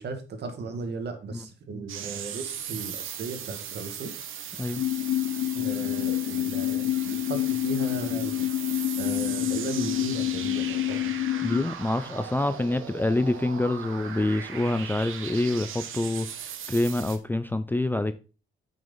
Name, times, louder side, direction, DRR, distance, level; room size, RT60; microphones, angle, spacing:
voice 1, 0.0-4.1 5.5-8.3 9.0-11.1, right 4 dB, 55° right, 1.8 m, -36 dB
sound 1, 1.9-17.2, right 8 dB, 80° right, 1.4 m, -38 dB
sound 2, 4.8-11.6, left 14 dB, 75° left, 0.8 m, -28 dB
voice 2, 11.4-16.3 16.7-18.1, left 2 dB, 10° left, 0.4 m, -26 dB
8.8 x 6.3 x 4.0 m
cardioid pair, 140°, 20 cm